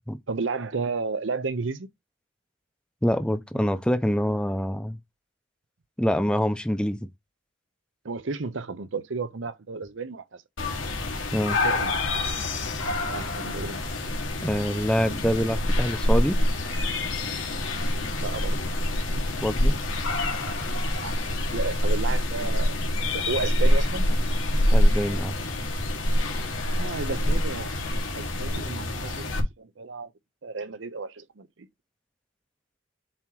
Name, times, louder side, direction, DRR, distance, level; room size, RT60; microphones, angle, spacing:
voice 1, 0.3-1.9 8.0-10.4 11.5-11.9 13.1-13.8 15.1-15.2 18.2-18.7 19.1-19.4 20.3-21.2 21.5-22.8 23.1-24.1 26.6-27.7 28.1-30.1 30.4-31.5, right 4 dB, 75° right, 0.7 m, -33 dB
voice 2, 3.0-5.0 6.0-7.1 11.3-11.6 14.4-16.4 19.4-19.8 24.7-25.3, equal, 5° left, 0.6 m, -25 dB
sound 1, 10.6-29.4, left 1 dB, 85° left, 1.8 m, -26 dB
7.2 x 2.9 x 4.6 m
head